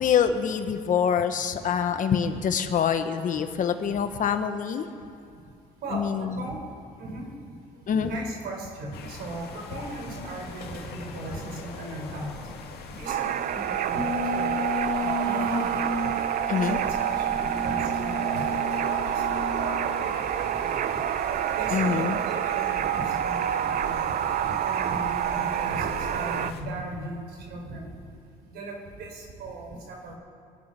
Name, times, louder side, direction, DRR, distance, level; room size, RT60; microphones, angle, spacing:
voice 1, 0.0-4.9 5.9-6.4 7.9-8.1 16.5-16.8 21.7-22.2, left 7 dB, 50° left, 8 dB, 1.2 m, -25 dB
voice 2, 5.8-6.6 7.0-7.6 7.9-12.4 12.9-15.9 16.6-21.0 21.5-24.1 24.4-28.0 28.5-30.1, right 2 dB, 70° right, 1 dB, 4.0 m, -37 dB
sound 1, 8.9-26.6, left 5 dB, 70° left, 2.3 m, -42 dB
sound 2, 13.1-26.5, right 11 dB, 55° right, 0.6 m, -28 dB
sound 3, 13.9-20.0, left 2 dB, 30° right, 5.2 m, -33 dB
24.0 x 9.7 x 5.9 m, 2.4 s
cardioid pair, 110°, 17 cm